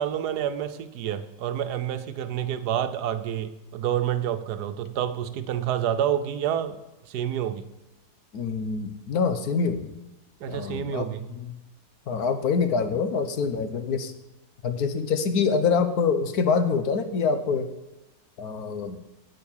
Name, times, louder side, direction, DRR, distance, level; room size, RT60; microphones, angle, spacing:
voice 1, 0.0-6.8 7.1-7.6 10.4-11.3, right 10 dB, 75° right, 10 dB, 1.3 m, -28 dB
voice 2, 8.3-10.0 10.5-11.6 12.1-14.1 14.6-17.7 18.4-19.0, left 5 dB, 70° left, 9 dB, 1.4 m, -25 dB
9.3 x 7.9 x 7.2 m, 1.0 s
omnidirectional pair, 1.7 m